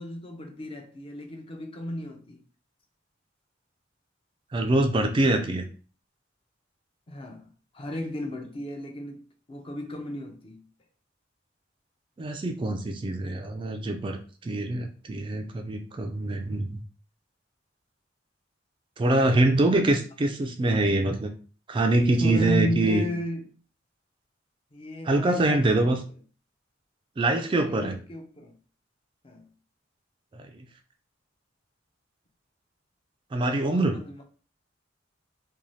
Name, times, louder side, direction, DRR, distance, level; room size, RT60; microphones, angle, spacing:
voice 1, 0.0-2.4 7.1-7.5 7.7-10.6 22.2-23.5 24.7-26.0 27.5-28.6 29.2-29.5 33.5-34.2, equal, 30° left, 0.5 m, -34 dB
voice 2, 4.5-5.6 12.2-14.2 14.4-16.8 19.0-21.3 21.7-23.0 25.1-26.0 27.2-28.0 33.3-34.0, right 2 dB, 25° right, 0.3 m, -24 dB
2.6 x 2.3 x 3.1 m
head